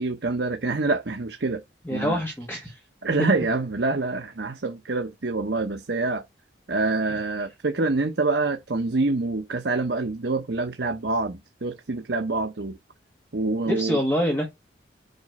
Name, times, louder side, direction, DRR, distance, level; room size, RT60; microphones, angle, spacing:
voice 1, 0.0-1.6 1.9-2.2 3.0-6.2 6.7-12.8 13.3-14.0, right 3 dB, 65° right, 0.8 m, -26 dB
voice 2, 1.8-2.8 7.1-7.2 13.6-14.5, equal, 15° left, 1.4 m, -26 dB
7.8 x 3.1 x 5.3 m
head